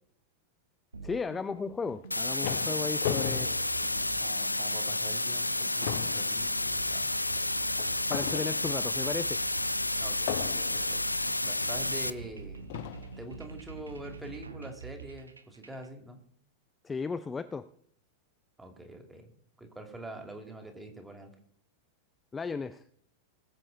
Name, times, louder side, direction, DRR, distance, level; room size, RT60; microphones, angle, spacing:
sound 1, 0.9-15.9, right 4 dB, 80° right, 1.2 m, -46 dB
voice 1, 1.0-3.5 8.1-9.4 16.8-17.7 22.3-22.8, left 5 dB, 15° left, 12 dB, 0.5 m, -35 dB
sound 2, 1.9-4.6 5.0-5.2 5.5-9.0 10.3-11.0 11.9-12.0 12.7-13.2, left 11 dB, 55° left, 1.0 m, -38 dB
sound 3, 2.1-12.1, left 2 dB, 90° left, 0.4 m, -31 dB
voice 2, 4.2-7.1 10.0-10.3 10.7-11.0 11.4-12.6 13.2-16.2 18.6-19.3 19.6-21.3, right 1 dB, 10° right, 4 dB, 2.7 m, -45 dB
20.0 x 7.7 x 4.1 m, 0.67 s
figure-of-eight pair, 90°, 0 cm